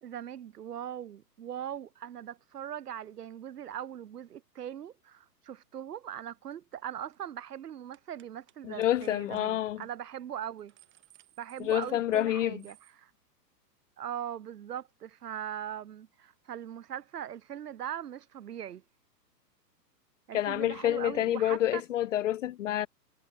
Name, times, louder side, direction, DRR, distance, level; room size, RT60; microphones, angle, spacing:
voice 1, 0.0-10.7 11.4-13.1 14.0-18.8 20.3-21.8, right 10 dB, 65° right, 2.8 m, -40 dB
sound 1, 6.5-6.7 7.0-7.3 7.9-8.6 8.8-8.9 9.3-9.4 9.8-10.0 10.4-12.3 12.6-13.0, right 13 dB, 25° right, 6.7 m, -61 dB
voice 2, 8.6-9.8 11.6-12.6 20.3-22.9, left 12 dB, 50° left, 0.5 m, -28 dB
hypercardioid pair, 130°, 50 cm